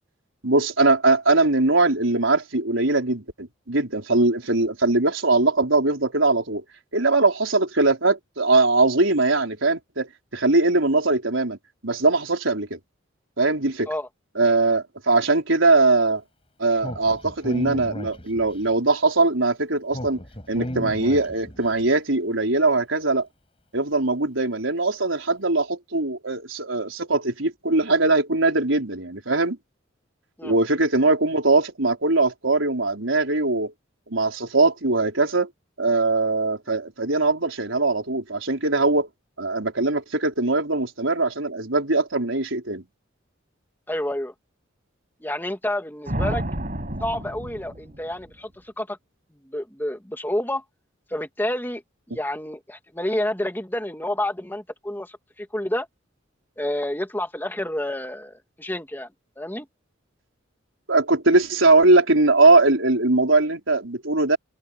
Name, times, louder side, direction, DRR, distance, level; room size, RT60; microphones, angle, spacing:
voice 1, 0.4-6.6 6.9-11.6 11.8-12.8 13.4-13.9 14.3-16.2 16.6-20.2 20.5-23.3 23.7-29.6 30.4-33.7 34.1-35.5 35.8-39.1 39.4-42.8 60.9-64.4, right 2 dB, 80° right, 4.6 m, -21 dB
Speech, 16.8-18.6 19.9-21.7, equal, 30° left, 7.8 m, -34 dB
voice 2, 43.9-44.3 45.2-46.4 47.0-49.0 49.4-50.6 51.1-51.8 52.1-55.9 56.6-59.1 59.4-59.6, left 1 dB, 10° left, 2.6 m, -29 dB
sound 1, 46.1-48.3, right 1 dB, 45° right, 6.5 m, -30 dB
head